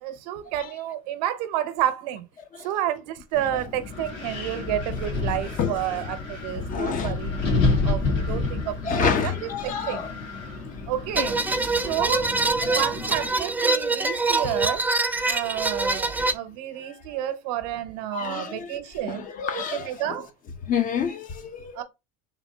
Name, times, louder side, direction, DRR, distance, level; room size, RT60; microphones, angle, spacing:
voice 1, 0.0-2.3 2.6-7.3 7.8-10.0 10.9-12.3 12.7-14.8 15.3-19.3 19.5-20.3 21.7-21.8, right 12 dB, 75° right, 0.8 m, -30 dB
Wind, 3.3-13.3, left 3 dB, 60° left, 2.0 m, -30 dB
voice 2, 5.3-6.0 6.6-7.2 8.8-10.1 11.2-11.3 12.6-12.8 14.4-14.6 15.2-15.4 18.1-20.1 20.6-21.8, left 6 dB, 40° left, 0.9 m, -29 dB
sound 1, 11.1-16.3, right 3 dB, 10° right, 0.4 m, -24 dB
3.6 x 2.8 x 4.4 m
supercardioid pair, 95°, 20 cm